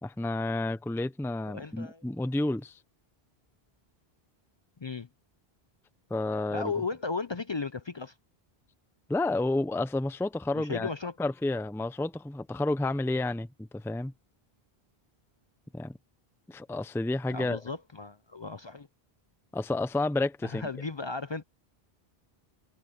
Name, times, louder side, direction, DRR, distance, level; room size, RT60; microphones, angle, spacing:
voice 1, 0.0-2.8 6.1-6.7 9.1-10.9 11.2-14.1 15.7-15.9 16.5-17.6 19.5-20.7, left 2 dB, 5° left, 0.7 m, -30 dB
voice 2, 1.5-2.0 4.8-5.1 6.5-8.1 10.5-11.1 17.3-18.9 20.4-21.4, left 4 dB, 40° left, 0.4 m, -35 dB
omnidirectional pair, 1.0 m